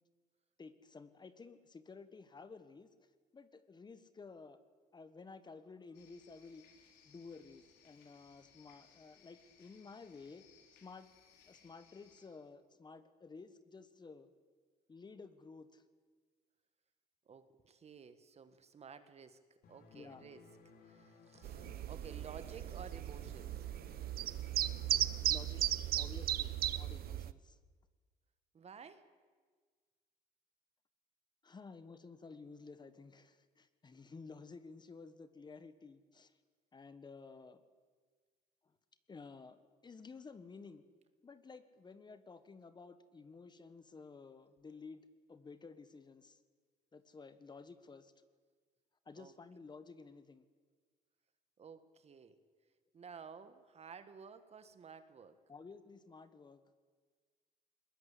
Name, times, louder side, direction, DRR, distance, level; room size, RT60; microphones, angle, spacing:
voice 1, 0.6-2.9 3.3-4.6 4.9-10.4 10.8-11.1 11.5-14.3 14.9-15.8 19.9-20.2 25.0-27.6 31.4-36.4 36.7-37.6 38.6-38.7 39.1-39.6 39.8-40.8 41.2-45.0 45.3-46.4 46.9-48.1 49.0-50.4 55.5-56.6, left 4 dB, 25° left, 12 dB, 1.4 m, -53 dB
sound 1, 5.9-12.3, left 7 dB, 90° left, 4.1 m, -66 dB
voice 2, 17.3-19.4 19.7-20.4 20.8-21.6 21.9-23.6 28.5-29.1 49.2-49.3 51.6-52.4 52.9-55.4, right 6 dB, 40° right, 11 dB, 1.6 m, -53 dB
sound 2, 19.6-25.2, left 4 dB, 60° left, 3.8 m, -60 dB
sound 3, 21.4-27.3, right 13 dB, 65° right, 0.8 m, -36 dB
21.0 x 20.5 x 8.4 m, 1.5 s
cardioid pair, 110°, 17 cm